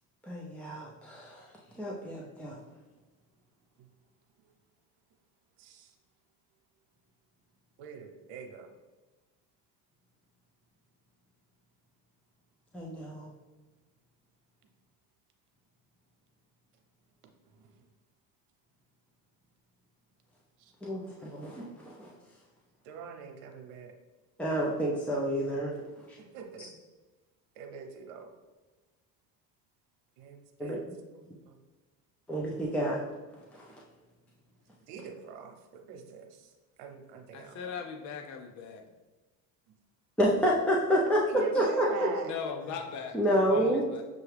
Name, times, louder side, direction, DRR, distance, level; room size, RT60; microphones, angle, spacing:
voice 1, 0.3-1.4 1.8-2.6 12.7-13.3 20.8-22.1 24.4-25.7 30.6-30.8 32.3-33.0 33.5-33.6 40.2-41.2 41.5-41.9 43.1-43.8, equal, 5° left, -3 dB, 0.6 m, -29 dB
voice 2, 5.6-5.9 7.8-8.7 17.6-17.7 22.8-23.9 26.2-26.7 27.6-28.3 30.2-31.6 34.9-36.5 36.8-37.7 41.1-42.3 43.5-43.7, right 5 dB, 85° right, 3 dB, 0.9 m, -44 dB
voice 3, 37.3-38.8 42.2-44.0, left 6 dB, 50° left, 4 dB, 0.6 m, -39 dB
6.7 x 2.3 x 3.3 m, 1.2 s
supercardioid pair, 100°, 37 cm